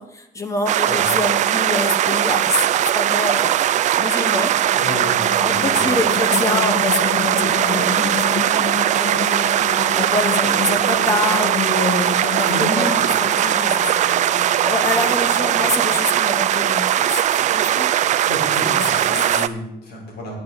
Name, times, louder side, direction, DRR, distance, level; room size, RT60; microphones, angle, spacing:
voice 1, 0.0-4.5 5.2-7.3 7.6-8.6 9.0-9.1 9.9-17.9 18.5-19.5, left 2 dB, 20° left, 7 dB, 1.0 m, -26 dB
sound 1, 0.7-19.5, right 11 dB, 45° right, 0.5 m, -19 dB
sound 2, 4.5-17.7, left 8 dB, 35° left, 0.6 m, -31 dB
voice 2, 4.7-5.9 12.4-13.0 18.2-20.4, left 1 dB, 75° left, -2 dB, 5.6 m, -30 dB
9.4 x 7.9 x 8.6 m, 0.84 s
cardioid pair, 175°, 17 cm